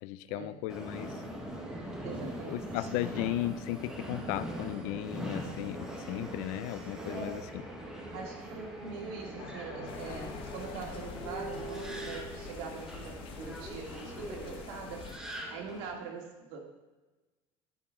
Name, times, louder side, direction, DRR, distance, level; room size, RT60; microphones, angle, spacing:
voice 1, 0.0-1.1 2.5-7.6, left 15 dB, 65° left, 15 dB, 0.4 m, -36 dB
Subway metro underground, 0.7-16.0, right 1 dB, 5° right, 0.9 m, -41 dB
voice 2, 2.0-2.9 7.1-7.4 8.1-16.6, right 5 dB, 90° right, 0 dB, 1.9 m, -43 dB
sound 1, 9.4-12.2, left 8 dB, 80° left, 0.8 m, -48 dB
sound 2, 9.9-15.2, left 6 dB, 45° left, 0.9 m, -46 dB
11.5 x 5.0 x 3.6 m, 1.2 s
cardioid pair, 160°, 13 cm